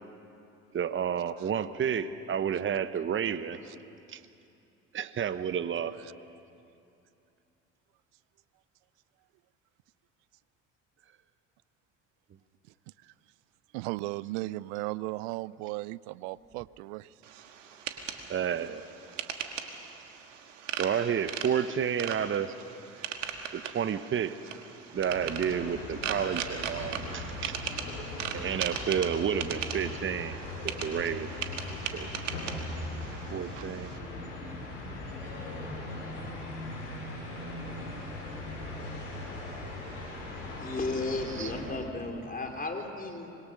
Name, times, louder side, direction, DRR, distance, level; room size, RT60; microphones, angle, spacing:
voice 1, 0.7-3.6 4.1-4.2 4.9-5.9 18.3-18.8 20.8-22.5 23.5-24.3 24.9-27.6 28.3-30.4 30.6-31.4 31.9-32.1 33.3-33.9 41.4-41.5, right 8 dB, 35° right, 12 dB, 1.1 m, -30 dB
voice 2, 13.7-17.4 26.4-26.5 32.2-32.3 33.6-33.7, right 19 dB, 70° right, 21 dB, 0.6 m, -36 dB
sound 1, 17.2-34.0, right 7 dB, 90° right, 1.6 m, -39 dB
sound 2, 24.9-41.6, left 2 dB, 90° left, 6.7 m, -39 dB
voice 3, 40.6-43.4, left 2 dB, 25° left, 2 dB, 4.1 m, -34 dB
25.0 x 22.0 x 6.6 m, 2.6 s
hypercardioid pair, 65°, 37 cm